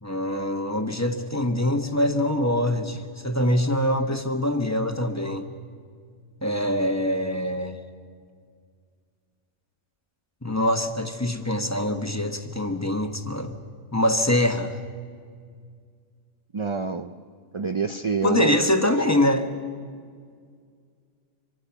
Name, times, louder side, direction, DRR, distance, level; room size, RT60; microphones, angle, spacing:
voice 1, 0.0-5.5 6.4-7.8 10.4-13.6 13.9-14.8 18.2-19.5, left 1 dB, 15° left, 6 dB, 1.2 m, -24 dB
voice 2, 16.5-17.1 17.5-18.9, right 4 dB, 40° right, 9 dB, 0.4 m, -27 dB
26.0 x 24.5 x 5.9 m, 2.1 s
omnidirectional pair, 1.3 m